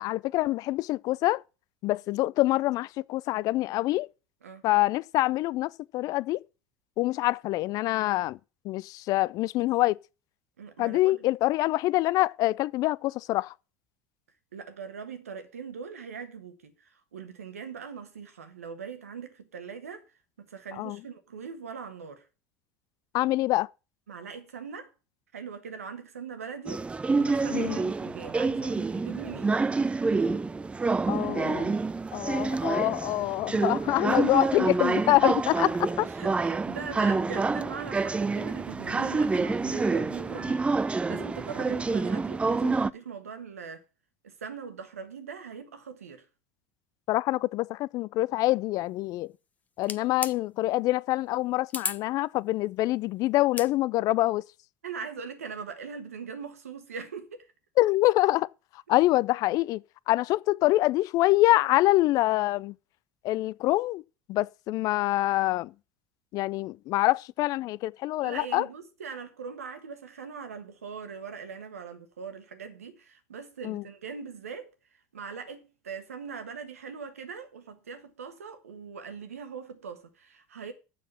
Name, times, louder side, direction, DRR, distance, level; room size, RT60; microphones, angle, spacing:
voice 1, 0.0-1.4 1.8-4.1 4.6-6.4 7.0-8.4 8.6-10.0 10.8-13.5 20.8-21.0 23.1-23.7 27.5-27.8 31.1-31.8 32.1-36.1 47.1-49.3 49.8-54.4 57.8-58.5 58.9-62.7 63.2-64.0 64.3-65.7 66.3-68.7 73.6-73.8, left 17 dB, 50° left, 0.4 m, -25 dB
voice 2, 10.6-11.2 14.5-20.0 20.4-22.2 24.1-24.9 25.3-29.6 34.9-35.0 36.0-40.7 41.0-43.8 44.2-46.2 54.8-57.5 68.2-74.7 75.1-80.7, right 6 dB, 90° right, 1.4 m, -41 dB
sound 1, 26.7-42.9, right 4 dB, 15° right, 0.4 m, -27 dB
sound 2, 49.8-50.4 51.7-52.0 53.4-53.7, left 4 dB, 20° left, 0.8 m, -33 dB
7.2 x 6.1 x 7.1 m
hypercardioid pair, 80°, 8 cm